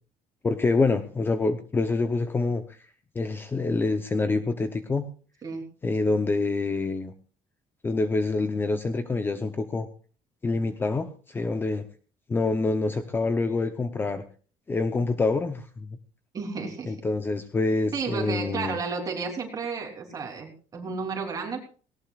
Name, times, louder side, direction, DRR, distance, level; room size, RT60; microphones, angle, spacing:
voice 1, 0.4-2.8 3.1-5.1 5.8-7.1 7.8-9.9 10.4-11.8 12.3-14.2 14.7-15.9 16.9-18.8, left 3 dB, 15° left, 9 dB, 0.7 m, -26 dB
voice 2, 16.3-16.9 17.9-21.6, right 5 dB, 25° right, 1 dB, 3.4 m, -32 dB
18.5 x 18.0 x 2.4 m, 0.39 s
cardioid pair, 175°, 14 cm